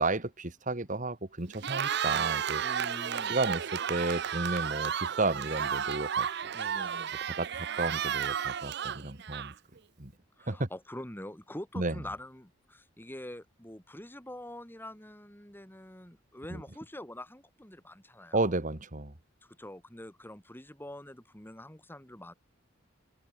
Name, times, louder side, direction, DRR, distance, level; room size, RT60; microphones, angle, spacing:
voice 1, 0.0-2.6 3.2-6.5 7.2-9.5 10.0-10.1 10.5-10.7 11.8-12.0 16.5-16.6 18.3-19.1, right 2 dB, 40° right, 2.0 m, -32 dB
Cheering, 1.5-9.8, right 8 dB, 55° right, 0.7 m, -32 dB
voice 2, 2.6-3.4 5.0-5.1 6.5-7.1 10.4-18.5 19.4-22.3, left 1 dB, 10° left, 3.0 m, -45 dB
open air
head